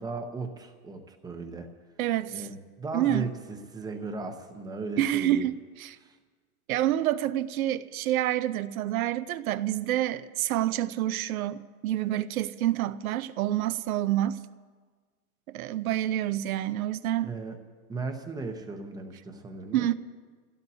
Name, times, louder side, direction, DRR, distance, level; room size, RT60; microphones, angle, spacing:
voice 1, 0.0-1.7 2.3-5.5 6.0-6.2 17.2-17.6 17.9-19.9, right 3 dB, 10° right, 0.8 m, -37 dB
voice 2, 2.0-2.5 2.9-3.2 5.0-5.5 5.8-6.0 6.7-14.4 15.5-17.3 19.7-19.9, right 13 dB, 70° right, 0.8 m, -28 dB
26.5 x 16.5 x 2.8 m
supercardioid pair, 150°, 44 cm